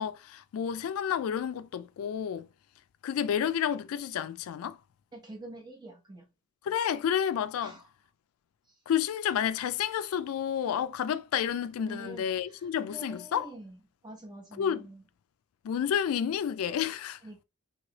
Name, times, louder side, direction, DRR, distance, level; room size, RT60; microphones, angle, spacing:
voice 1, 0.0-2.5 3.0-4.8 6.6-7.8 8.9-13.5 14.6-14.9 15.6-17.2, left 8 dB, 85° left, 0.3 m, -30 dB
voice 2, 5.1-6.2 7.6-7.9 11.9-15.0 17.2-17.4, right 1 dB, 20° right, 0.8 m, -46 dB
3.1 x 2.8 x 2.8 m
head